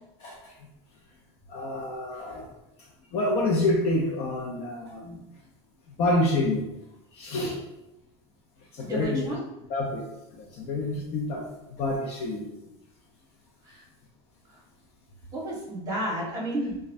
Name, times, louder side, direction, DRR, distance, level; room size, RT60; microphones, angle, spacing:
voice 1, 0.2-0.5 1.5-2.5 3.1-5.2 6.0-6.7 7.1-7.6 8.7-9.4 9.7-10.1 10.3-12.6, left 2 dB, 45° left, 0 dB, 0.6 m, -28 dB
voice 2, 8.8-9.4 13.6-13.8 14.5-14.6 15.3-16.8, right 1 dB, 25° right, -5 dB, 1.2 m, -31 dB
3.2 x 2.2 x 2.5 m, 0.89 s
supercardioid pair, 135°, 15 cm